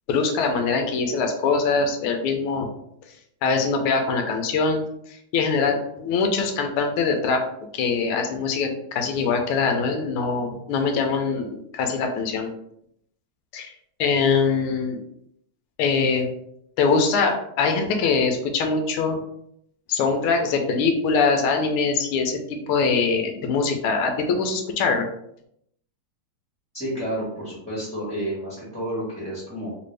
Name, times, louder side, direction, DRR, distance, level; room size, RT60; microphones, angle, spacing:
voice 1, 0.1-2.7 3.4-4.8 5.1-7.4 7.7-12.5 13.5-13.7 14.0-15.0 15.8-16.3 16.8-19.2 19.9-25.1, left 4 dB, 90° left, 4 dB, 1.5 m, -23 dB
voice 2, 26.7-29.7, right 1 dB, 5° left, -8 dB, 0.7 m, -30 dB
3.6 x 2.5 x 3.2 m, 0.74 s
omnidirectional pair, 2.3 m